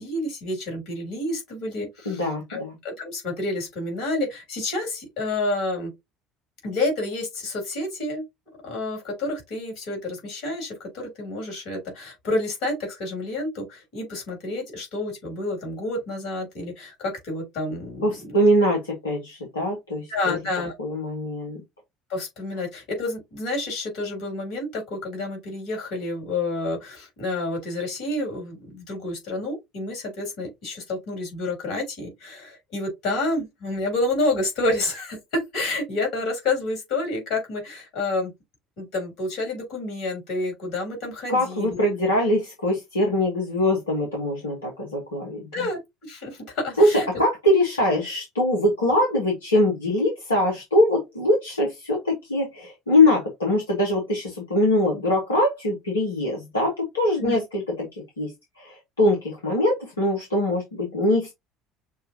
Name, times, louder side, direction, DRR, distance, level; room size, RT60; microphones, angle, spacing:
voice 1, 0.0-5.9 6.6-8.2 8.6-18.3 20.1-20.7 22.1-38.3 38.8-42.0 45.5-47.1 57.2-57.4, left 2 dB, 60° left, 3.5 m, -29 dB
voice 2, 2.0-2.7 18.0-20.4 20.8-21.6 41.3-45.4 46.8-57.9 58.2-58.3 58.6-61.3, left 1 dB, 80° left, 1.4 m, -22 dB
6.4 x 2.6 x 2.8 m
figure-of-eight pair, 60°, 0 cm